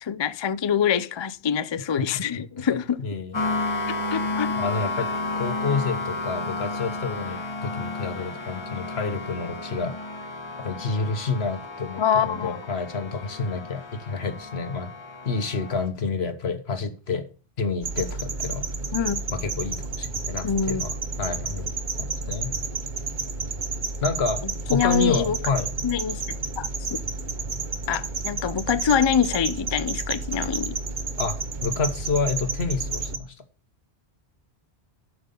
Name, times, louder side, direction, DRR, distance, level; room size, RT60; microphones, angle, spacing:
voice 1, 0.0-3.0 4.1-4.5 12.0-12.6 18.9-19.2 20.4-20.8 24.7-25.4 25.8-26.2 26.6-27.0 27.9-30.8, left 8 dB, 45° left, 0.3 m, -25 dB
voice 2, 2.0-3.4 4.6-5.1 5.4-10.0 10.6-14.9 15.2-17.2 17.6-18.7 19.3-22.5 24.0-24.4 24.7-25.7 31.2-33.3, left 4 dB, 70° left, 1.5 m, -29 dB
sound 1, 3.3-15.9, left 3 dB, 25° left, 1.3 m, -32 dB
sound 2, 17.8-33.2, right 4 dB, 50° right, 1.0 m, -31 dB
11.5 x 6.0 x 5.3 m
omnidirectional pair, 1.1 m